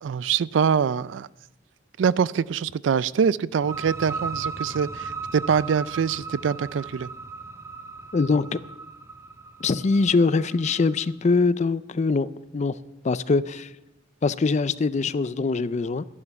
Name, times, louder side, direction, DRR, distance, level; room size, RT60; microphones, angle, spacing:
voice 1, 0.0-1.3 2.0-7.1, right 7 dB, 70° right, 0.4 m, -24 dB
sound 1, 3.5-11.0, right 4 dB, 15° right, 0.5 m, -37 dB
voice 2, 8.1-8.6 9.6-12.3 12.5-12.8 13.0-13.7 14.2-16.0, left 4 dB, 40° left, 0.4 m, -23 dB
12.5 x 11.0 x 5.8 m
head